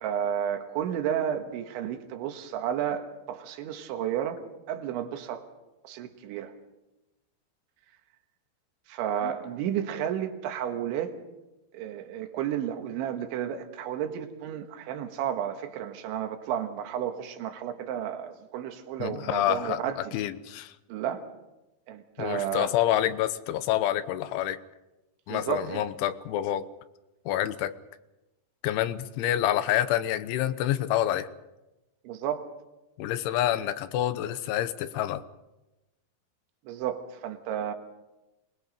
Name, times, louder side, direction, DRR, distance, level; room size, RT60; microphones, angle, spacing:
voice 1, 0.0-4.4 4.7-5.5 5.8-6.5 8.9-11.1 11.7-20.1 20.9-21.3 21.9-22.7 25.3-25.8 32.1-32.5 36.7-37.7, right 9 dB, 80° right, 6 dB, 3.8 m, -32 dB
voice 2, 19.0-20.7 22.2-24.6 25.3-26.7 27.3-27.7 28.6-31.3 33.0-35.3, left 12 dB, 90° left, 12 dB, 3.4 m, -27 dB
25.0 x 20.5 x 5.2 m, 0.99 s
omnidirectional pair, 5.3 m